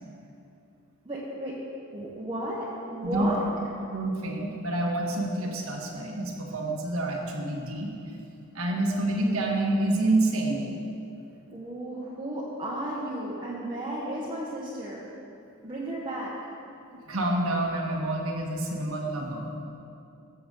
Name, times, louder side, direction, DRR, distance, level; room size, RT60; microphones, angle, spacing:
voice 1, 1.0-1.6 1.9-3.4 11.5-15.1 15.6-16.3, right 1 dB, 25° right, -7 dB, 1.1 m, -33 dB
voice 2, 3.9-7.9 8.5-10.6 17.1-19.5, right 2 dB, 80° right, 0 dB, 1.4 m, -28 dB
15.0 x 6.9 x 3.8 m, 2.7 s
head